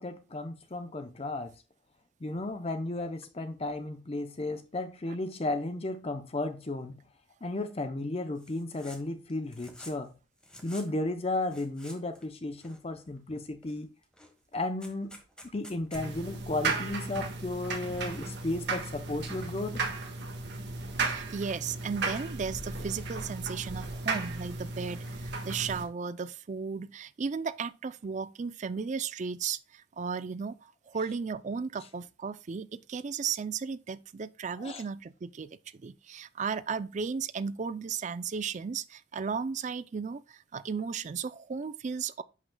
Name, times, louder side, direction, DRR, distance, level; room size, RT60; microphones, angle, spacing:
voice 1, 0.0-1.5 2.2-7.0 7.4-10.1 10.6-13.9 14.5-15.2 15.5-19.8 34.6-34.8, left 2 dB, 30° left, 0.6 m, -34 dB
sound 1, 8.4-9.0 9.3-10.1 10.4-10.9 11.3-12.3 12.6-13.2 13.6-13.8 14.0-16.0, left 1 dB, 5° left, 1.3 m, -50 dB
sound 2, 15.9-25.8, right 3 dB, 60° right, 1.5 m, -35 dB
voice 2, 21.0-42.2, right 5 dB, 40° right, 0.4 m, -35 dB
10.5 x 5.7 x 2.2 m
head